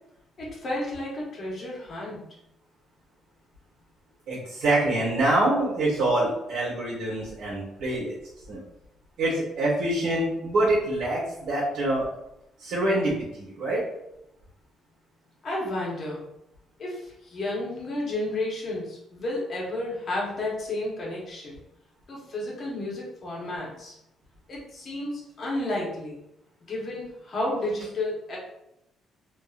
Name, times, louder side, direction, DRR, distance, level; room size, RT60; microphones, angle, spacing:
voice 1, 0.4-2.2 15.4-16.2 16.8-21.6 22.1-24.0 24.5-26.2 26.6-28.4, left 1 dB, 35° left, -4 dB, 0.9 m, -32 dB
voice 2, 4.3-8.1 8.5-8.6 9.2-12.1 12.6-13.8, right 1 dB, 85° right, -6 dB, 1.1 m, -25 dB
2.6 x 2.6 x 2.4 m, 0.82 s
cardioid pair, 155°, 0 cm